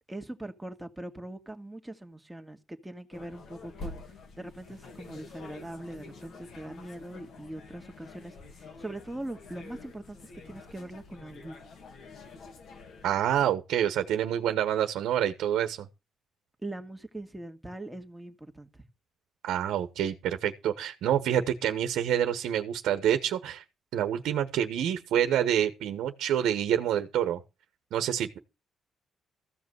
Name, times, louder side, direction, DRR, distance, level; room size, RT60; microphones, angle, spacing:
voice 1, 0.1-4.0 4.4-11.6 16.6-18.7, right 1 dB, 5° right, 2.1 m, -41 dB
sound 1, 3.1-13.5, left 3 dB, 60° left, 2.7 m, -47 dB
voice 2, 13.0-15.9 19.4-23.6 23.9-27.4 27.9-28.4, right 10 dB, 80° right, 1.3 m, -27 dB
15.0 x 5.3 x 8.0 m
cardioid pair, 90°, 0 cm